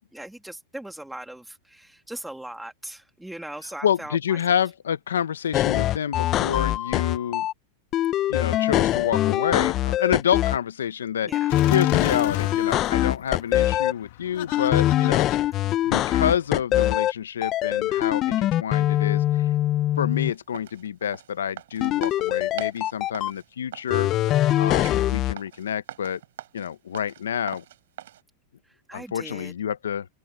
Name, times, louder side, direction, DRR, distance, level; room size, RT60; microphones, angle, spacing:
voice 1, 0.0-4.4 11.2-11.6 28.6-29.5, right 1 dB, 5° right, 2.4 m, -39 dB
voice 2, 3.8-7.5 8.3-11.3 11.7-15.3 15.8-19.5 20.0-24.1 24.6-26.2 26.5-27.6 28.9-30.1, left 9 dB, 90° left, 1.0 m, -28 dB
sound 1, 5.5-7.5 7.9-10.6 11.3-13.9 14.5-17.1 17.4-20.3 21.8-23.3 23.9-25.3, left 13 dB, 40° left, 0.5 m, -23 dB
Laughter, 11.5-16.7, left 18 dB, 65° left, 1.3 m, -38 dB
sound 2, 20.1-28.2, right 12 dB, 75° right, 5.4 m, -43 dB
open air
hypercardioid pair, 110°, 0 cm